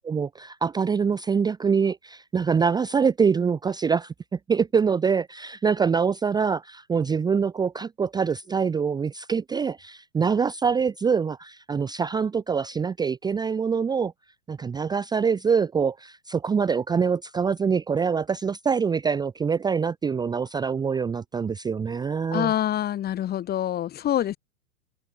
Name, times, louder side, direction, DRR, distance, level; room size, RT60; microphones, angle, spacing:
voice 1, 0.0-4.1 4.5-14.1 14.5-22.5, right 6 dB, 10° right, 0.8 m, -24 dB
voice 2, 22.3-24.4, left 11 dB, 20° left, 1.5 m, -26 dB
figure-of-eight pair, 100°, 44 cm